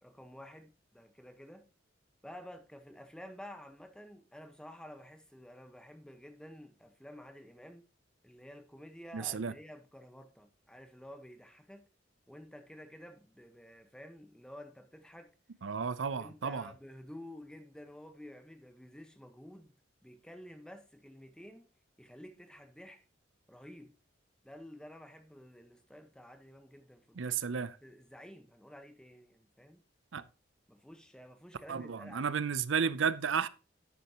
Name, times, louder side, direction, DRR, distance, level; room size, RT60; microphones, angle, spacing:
voice 1, 0.0-1.7 2.2-7.8 8.2-11.8 12.3-15.3 16.1-19.7 20.0-21.6 22.0-23.0 23.5-23.9 24.4-27.3 27.8-29.8 30.7-32.4, equal, 5° left, 1.2 m, -51 dB
voice 2, 9.1-9.5 15.6-16.7 27.2-27.7 30.1-30.2 31.7-33.5, right 6 dB, 80° right, 0.6 m, -32 dB
11.0 x 8.6 x 3.0 m
head